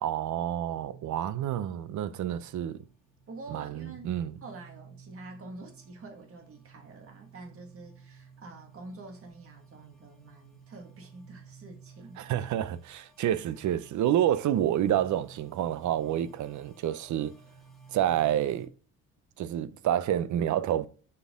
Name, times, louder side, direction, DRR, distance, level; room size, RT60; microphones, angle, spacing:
voice 1, 0.0-2.9 3.5-4.4 12.2-17.3 17.9-18.7 19.4-20.9, right 11 dB, 75° right, 0.6 m, -28 dB
sound 1, 0.7-18.7, right 6 dB, ahead, 1.6 m, -54 dB
voice 2, 3.3-4.1 4.4-12.2, right 3 dB, 50° right, 1.8 m, -47 dB
6.8 x 4.7 x 3.6 m
cardioid pair, 150°, 30 cm